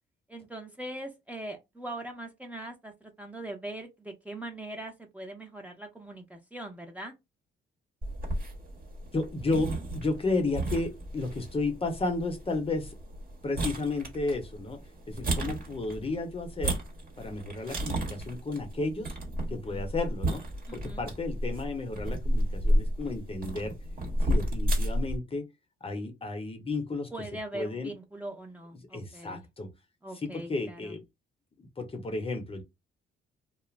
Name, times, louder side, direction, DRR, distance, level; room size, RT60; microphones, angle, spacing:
voice 1, 0.3-7.1 19.5-19.8 20.7-21.0 27.1-29.5 30.0-30.9, right 1 dB, 5° right, 0.7 m, -41 dB
sound 1, 8.0-25.2, equal, 45° right, 1.3 m, -32 dB
voice 2, 9.1-12.9 13.4-14.8 15.1-16.8 17.2-19.1 19.5-20.4 20.7-23.8 24.2-25.4 25.8-27.1 27.5-27.9 28.9-29.7 30.2-31.0 31.6-32.6, left 3 dB, 30° left, 0.7 m, -32 dB
2.4 x 2.1 x 3.1 m
cardioid pair, 90°, 20 cm